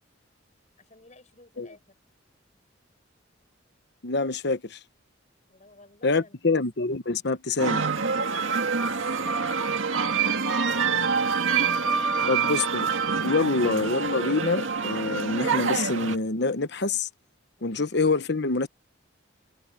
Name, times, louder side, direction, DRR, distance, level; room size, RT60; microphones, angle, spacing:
voice 1, 0.8-1.8 5.5-6.4 9.0-9.8, left 2 dB, 40° left, 6.7 m, -55 dB
voice 2, 4.0-4.8 6.0-7.8 12.3-12.9 13.2-17.1 17.6-18.7, left 3 dB, 60° left, 1.1 m, -26 dB
sound 1, 7.6-16.2, right 5 dB, 90° right, 2.0 m, -26 dB
head